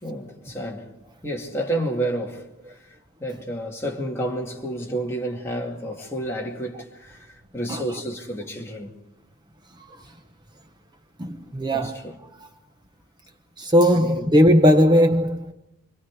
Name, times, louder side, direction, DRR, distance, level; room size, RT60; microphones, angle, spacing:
voice 1, 0.0-0.9 1.2-2.9 3.2-8.9 11.7-12.2 13.9-14.3, right 1 dB, 10° left, 2.6 m, -30 dB
voice 2, 11.2-11.9 13.6-15.5, equal, 20° right, 0.9 m, -18 dB
29.0 x 24.0 x 4.9 m
head